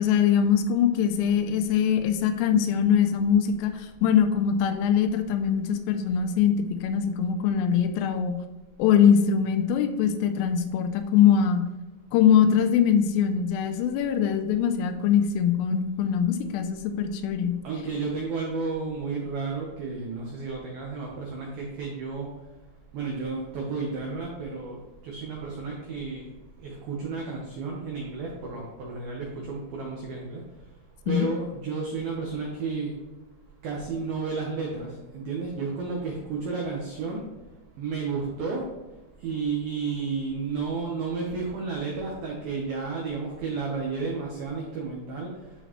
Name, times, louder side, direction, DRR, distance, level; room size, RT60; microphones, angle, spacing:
voice 1, 0.0-8.4 8.8-11.6 12.1-17.5 31.1-31.3, left 8 dB, 90° left, 7 dB, 3.3 m, -22 dB
voice 2, 17.6-22.3 22.9-24.7 25.0-26.2 26.6-30.4 31.1-32.9 33.6-34.9 35.1-37.2 37.8-38.6 39.2-45.3, right 4 dB, 85° right, -2 dB, 2.1 m, -32 dB
12.0 x 4.1 x 3.1 m, 1.1 s
omnidirectional pair, 5.8 m